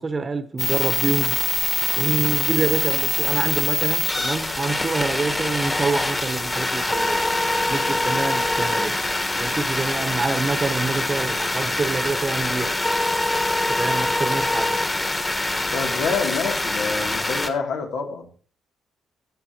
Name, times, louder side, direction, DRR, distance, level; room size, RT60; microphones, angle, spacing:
voice 1, 0.0-1.4 1.9-7.2 7.7-9.0 9.3-12.8 13.7-14.7, right 4 dB, 30° right, 1.2 m, -26 dB
sound 1, 0.6-17.5, left 2 dB, 20° left, 1.6 m, -24 dB
voice 2, 15.6-18.3, left 5 dB, 85° left, 2.9 m, -27 dB
19.0 x 7.6 x 3.0 m
cardioid pair, 90°, 0 cm